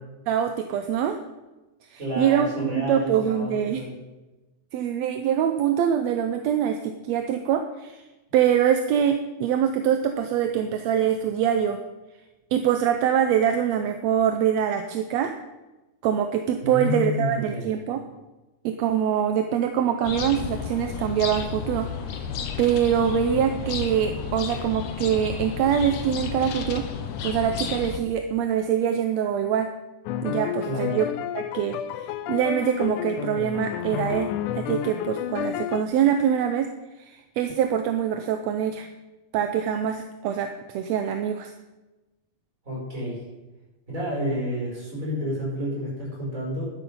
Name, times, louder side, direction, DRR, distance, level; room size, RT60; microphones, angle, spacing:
voice 1, 0.3-1.2 1.9-3.8 4.7-8.0 8.3-11.8 12.5-15.3 16.0-18.0 18.6-22.3 22.6-26.8 27.2-29.7 30.2-31.1 31.3-36.7 37.0-38.9 39.3-41.5, right 9 dB, 75° right, 7 dB, 1.7 m, -24 dB
voice 2, 2.0-3.9 16.6-17.7 30.7-31.0 42.7-43.2 43.9-46.7, left 1 dB, 25° right, -5 dB, 5.9 m, -30 dB
sound 1, 20.0-28.0, left 6 dB, 70° left, 2.1 m, -32 dB
sound 2, 30.1-35.8, left 10 dB, 85° left, 2.1 m, -31 dB
11.5 x 10.5 x 5.4 m, 1.1 s
omnidirectional pair, 3.5 m